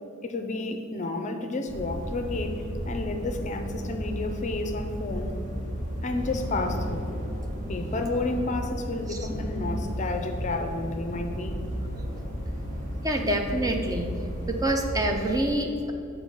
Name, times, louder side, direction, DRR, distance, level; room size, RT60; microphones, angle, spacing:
voice 1, 0.2-5.3 6.0-7.1 7.7-11.6, left 2 dB, 35° left, 6 dB, 0.5 m, -31 dB
sound 1, 1.7-15.4, equal, 40° right, 1.4 m, -33 dB
voice 2, 13.0-14.1 14.5-15.9, right 1 dB, 15° right, 3 dB, 0.5 m, -26 dB
6.9 x 3.7 x 6.3 m, 2.7 s
head